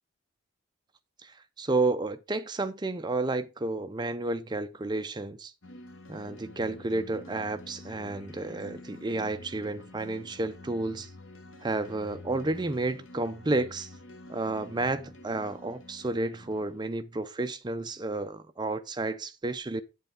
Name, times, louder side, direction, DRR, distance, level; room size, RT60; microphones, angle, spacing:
voice 1, 1.2-5.5 6.1-11.1 11.6-13.9 14.3-19.8, right 2 dB, 20° right, 0.5 m, -31 dB
sound 1, 5.6-16.8, left 2 dB, 60° left, 0.9 m, -48 dB
8.2 x 7.9 x 3.6 m
head